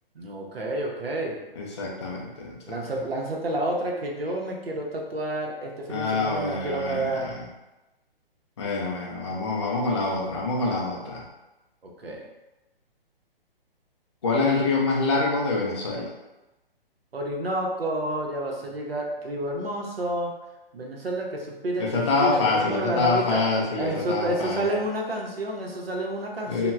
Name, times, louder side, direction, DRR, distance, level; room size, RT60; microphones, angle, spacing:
voice 1, 0.1-1.4 2.7-7.4 11.8-12.2 17.1-20.4 20.7-23.4 23.8-26.7, right 1 dB, 85° right, -1 dB, 0.7 m, -30 dB
voice 2, 1.6-2.8 5.9-7.4 8.6-11.3 14.2-16.1 21.8-24.7 26.5-26.7, left 3 dB, 30° left, -3 dB, 0.3 m, -26 dB
2.9 x 2.1 x 2.3 m, 1.0 s
figure-of-eight pair, 130°, 29 cm